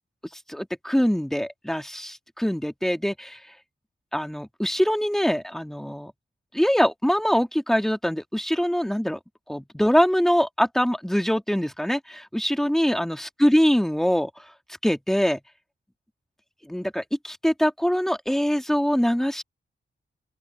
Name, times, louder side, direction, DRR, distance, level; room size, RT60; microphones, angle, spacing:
voice 1, 0.5-3.4 4.1-6.1 6.5-9.2 9.5-14.3 14.8-15.4 16.7-19.4, equal, ahead, 2.0 m, -23 dB
open air
wide cardioid pair, 130°, 20 cm